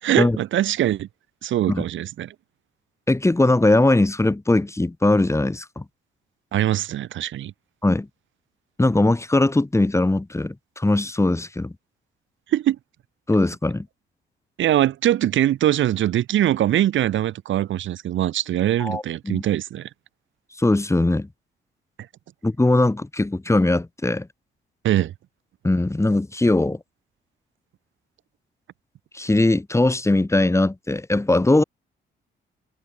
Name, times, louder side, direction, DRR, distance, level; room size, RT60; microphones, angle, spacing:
voice 1, 0.0-1.1 1.4-2.3 6.5-7.5 12.5-12.8 14.6-19.9 24.8-25.1, right 12 dB, 75° right, 2.8 m, -22 dB
voice 2, 3.1-5.8 7.8-8.1 8.8-11.7 13.3-13.9 18.8-19.4 20.6-21.3 22.4-24.3 25.6-26.8 29.1-31.6, left 2 dB, 15° left, 7.9 m, -20 dB
cardioid pair, 90°, 20 cm